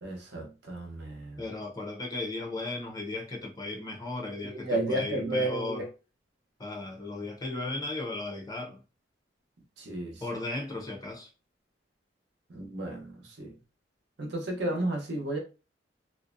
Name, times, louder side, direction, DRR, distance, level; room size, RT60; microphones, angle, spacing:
voice 1, 0.0-1.4 4.4-5.9 9.8-10.2 12.5-13.1 13.4-13.5 14.2-15.4, right 1 dB, 65° right, 0.8 m, -32 dB
voice 2, 1.4-5.8 6.6-8.8 10.2-11.3, left 2 dB, 20° left, 0.6 m, -36 dB
2.5 x 2.1 x 2.5 m
head